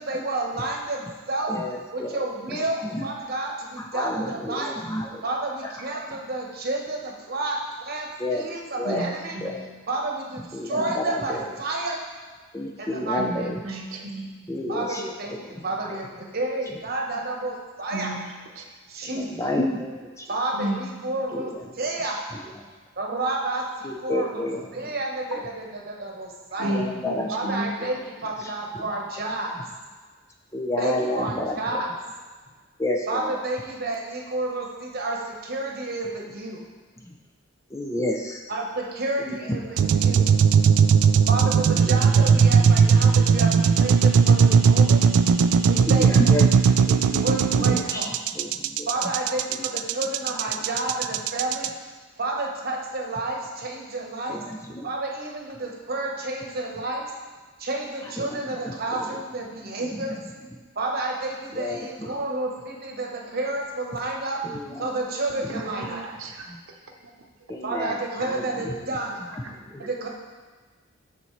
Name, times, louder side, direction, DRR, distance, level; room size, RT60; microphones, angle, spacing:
voice 1, 0.0-1.5 1.9-4.7 5.2-8.1 8.3-9.4 9.9-12.0 12.8-13.5 14.7-15.3 15.6-18.1 18.9-19.5 20.3-21.5 21.8-22.2 23.0-24.5 24.7-26.8 27.3-29.5 30.8-31.9 33.1-36.6 38.5-40.2 41.3-45.0 45.6-46.1 47.2-48.1 48.9-51.7 52.2-54.4 54.8-57.1 57.6-60.2 60.8-64.4 64.8-66.0 67.6-69.1 69.8-70.1, right 2 dB, 45° right, 0 dB, 1.0 m, -30 dB
voice 2, 1.5-3.1 3.8-5.2 5.6-5.7 8.2-9.7 10.4-11.5 12.5-13.6 14.4-16.0 16.7-16.8 19.0-20.4 21.3-22.7 23.8-24.9 25.3-25.4 26.6-28.0 28.4-28.9 29.3-29.6 30.5-31.8 32.8-33.4 37.0-37.2 37.7-38.5 39.2-40.7 41.8-42.7 45.9-49.1 49.6-50.1 54.3-54.9 58.0-59.2 59.8-60.4 61.5-62.3 64.4-64.9 65.4-65.7 66.5-66.6 67.5-68.8 69.2-69.9, left 1 dB, 15° left, 1 dB, 0.5 m, -32 dB
voice 3, 8.9-9.5 13.2-14.3 14.7-14.8 17.9-18.2 18.6-18.7 20.5-20.8 26.6-27.7 47.6-47.8 65.7-66.5, right 1 dB, 70° right, 2 dB, 0.8 m, -32 dB
sound 1, 39.8-51.7, right 6 dB, 90° right, 0.3 m, -18 dB
12.0 x 4.2 x 3.1 m, 1.4 s
head